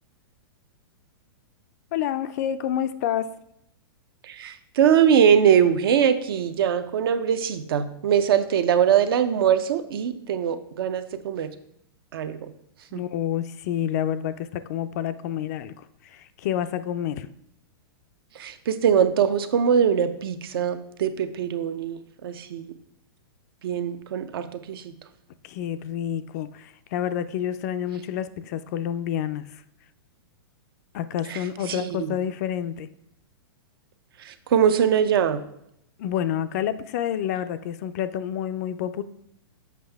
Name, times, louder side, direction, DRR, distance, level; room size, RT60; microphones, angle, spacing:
voice 1, 1.9-3.3 12.9-17.3 25.4-29.6 30.9-32.9 36.0-39.0, left 10 dB, 40° left, 12 dB, 0.4 m, -28 dB
voice 2, 4.2-11.5 12.1-12.5 12.9-13.0 18.4-22.7 23.6-24.8 31.3-32.1 34.2-35.4, right 8 dB, 65° right, 11 dB, 0.6 m, -22 dB
7.4 x 5.4 x 3.4 m, 0.76 s
hypercardioid pair, 150°, 13 cm